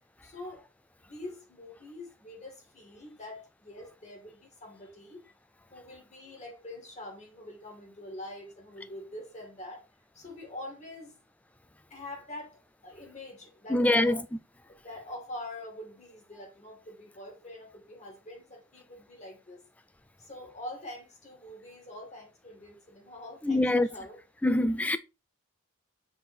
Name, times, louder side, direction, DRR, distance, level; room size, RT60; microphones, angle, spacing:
voice 1, 0.2-0.6 1.1-5.2 5.7-9.9 10.1-11.2 11.9-12.6 12.8-14.2 14.7-19.6 20.2-24.2, left 1 dB, 30° left, 2.3 m, -45 dB
voice 2, 13.7-14.2 23.4-23.9 24.4-25.0, left 1 dB, 5° left, 0.3 m, -24 dB
6.0 x 3.5 x 4.4 m
head